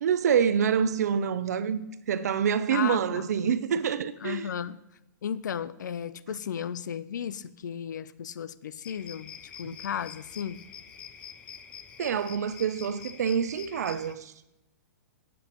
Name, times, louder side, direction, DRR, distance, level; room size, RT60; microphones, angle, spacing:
voice 1, 0.0-4.4 12.0-14.3, right 7 dB, 60° right, 0.5 m, -26 dB
voice 2, 2.7-3.3 4.2-4.8 5.2-9.3 9.6-10.6, left 8 dB, 75° left, 0.5 m, -34 dB
sound 1, 8.8-14.1, left 8 dB, 10° left, 0.4 m, -46 dB
15.5 x 7.6 x 3.0 m
hypercardioid pair, 175°, 10 cm